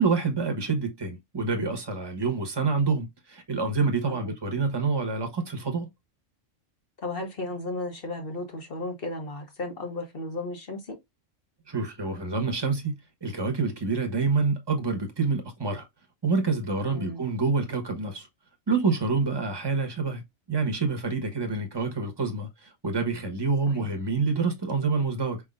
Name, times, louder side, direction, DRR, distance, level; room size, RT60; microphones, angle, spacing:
voice 1, 0.0-5.9 11.7-15.8 16.2-18.3 18.7-20.2 20.5-25.4, right 4 dB, 20° right, 1.0 m, -27 dB
voice 2, 7.0-11.0 16.9-17.2 23.7-23.9, left 2 dB, 50° left, 1.5 m, -34 dB
4.9 x 3.6 x 2.5 m
omnidirectional pair, 1.3 m